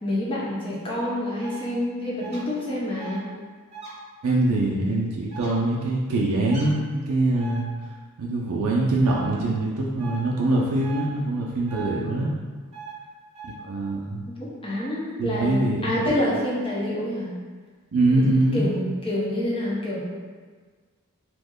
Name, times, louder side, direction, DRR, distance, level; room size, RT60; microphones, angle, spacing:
voice 1, 0.0-3.3 14.6-17.3 18.1-18.2 18.5-20.0, left 1 dB, 25° left, -6 dB, 0.7 m, -27 dB
sound 1, 1.4-1.6 2.2-2.4 3.0-3.2 3.7-3.9 5.3-5.5 6.5-6.7 7.4-7.6 9.0-9.2 10.0-10.2 10.8-11.0 11.7-11.9 12.7-12.9 13.3-13.5, right 5 dB, 30° right, 0.8 m, -39 dB
voice 2, 4.2-7.6 8.2-12.3 13.4-14.2 15.2-15.9 17.9-18.7, right 2 dB, 80° right, -3 dB, 0.4 m, -23 dB
3.0 x 2.1 x 3.5 m, 1.5 s
head